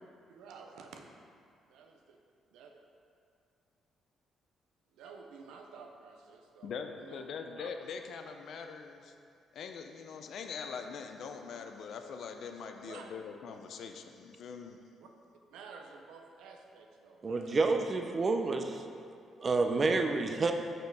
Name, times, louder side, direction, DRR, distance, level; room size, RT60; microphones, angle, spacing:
voice 1, 0.3-1.0 1.7-2.2 2.5-2.7 4.9-6.7 7.0-7.3 7.6-7.7 12.8-13.1 15.0-15.1 15.5-17.6, right 5 dB, 90° right, 3 dB, 0.5 m, -51 dB
voice 2, 6.6-9.1 9.5-14.8, left 6 dB, 70° left, 5 dB, 0.4 m, -42 dB
voice 3, 17.2-18.8 19.4-20.5, right 3 dB, 35° right, 5 dB, 0.5 m, -29 dB
5.2 x 4.4 x 4.6 m, 2.4 s
cardioid pair, 90°, 0 cm